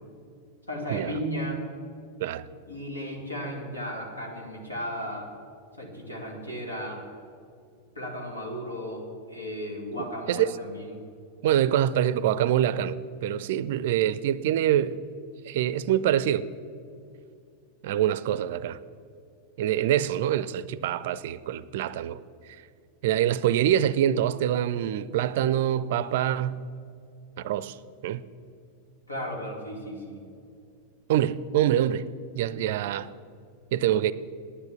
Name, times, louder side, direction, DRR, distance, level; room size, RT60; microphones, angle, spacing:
voice 1, 0.7-1.7 2.7-5.3 5.8-7.0 7.9-11.0 29.1-30.3, equal, 80° left, 2.4 m, -35 dB
voice 2, 10.0-10.5 11.4-15.0 15.5-16.5 17.8-18.8 19.6-22.2 23.0-26.6 27.4-27.8 28.0-28.2 31.1-32.1 32.3-33.1 33.7-34.1, right 11 dB, 55° right, 0.4 m, -25 dB
10.5 x 9.8 x 7.3 m
figure-of-eight pair, 90°, 0 cm